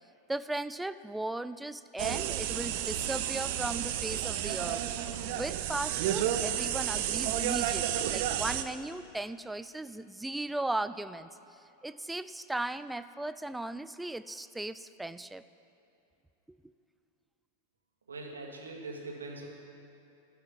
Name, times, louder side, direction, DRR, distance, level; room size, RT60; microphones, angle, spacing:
voice 1, 0.3-4.9 5.3-11.3 11.8-15.4 16.5-16.6, right 2 dB, 5° right, 14 dB, 0.3 m, -37 dB
sound 1, 2.0-8.6, right 11 dB, 50° right, 0.6 m, -31 dB
voice 2, 18.1-19.4, right 3 dB, 70° right, 0 dB, 1.7 m, -42 dB
12.5 x 5.8 x 9.3 m, 2.8 s
figure-of-eight pair, 90°, 0 cm